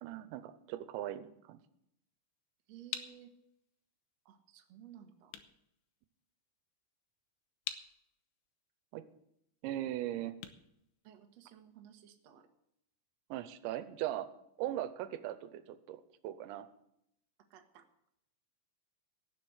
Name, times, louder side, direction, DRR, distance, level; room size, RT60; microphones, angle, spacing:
voice 1, 0.0-1.6 8.9-9.0 9.6-10.4 13.3-14.3 14.6-16.7, right 13 dB, 85° right, 12 dB, 3.1 m, -39 dB
sound 1, 2.5-11.7, left 10 dB, 75° left, 3.0 m, -49 dB
voice 2, 2.7-3.3 4.2-5.3 11.0-12.5 17.5-17.9, right 10 dB, 65° right, 5 dB, 1.6 m, -56 dB
17.5 x 7.1 x 8.0 m, 0.78 s
omnidirectional pair, 5.1 m